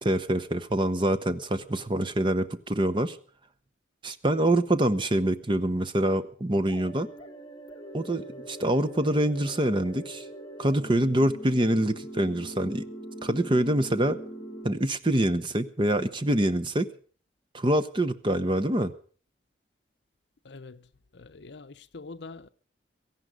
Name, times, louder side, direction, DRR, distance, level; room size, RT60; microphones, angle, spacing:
voice 1, 0.0-3.2 4.0-7.1 7.9-10.2 10.6-12.8 13.2-14.2 14.6-16.9 17.5-18.9, right 1 dB, 25° right, 0.8 m, -25 dB
sound 1, 6.7-14.7, right 1 dB, 25° left, 1.9 m, -42 dB
voice 2, 20.4-20.9 21.1-22.5, left 3 dB, 60° left, 0.7 m, -44 dB
17.5 x 14.5 x 5.1 m
head